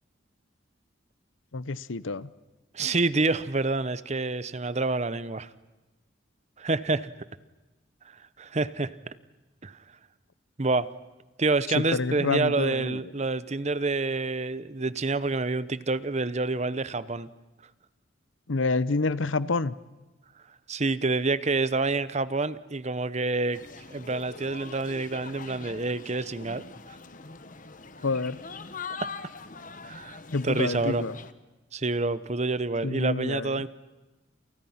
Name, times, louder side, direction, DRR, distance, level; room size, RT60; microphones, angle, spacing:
voice 1, 1.5-2.3 11.7-13.0 18.5-19.7 28.0-28.4 30.3-31.1 32.8-33.7, left 3 dB, 80° left, 17 dB, 0.9 m, -28 dB
voice 2, 2.7-5.5 6.6-7.1 8.4-8.9 9.6-9.7 10.6-10.9 11.4-17.3 20.7-23.6 23.9-26.6 29.8-31.0 31.7-33.7, right 3 dB, 35° right, 16 dB, 0.9 m, -27 dB
sound 1, 23.5-31.3, left 4 dB, 40° left, 1.2 m, -43 dB
29.0 x 28.5 x 5.8 m, 1.1 s
head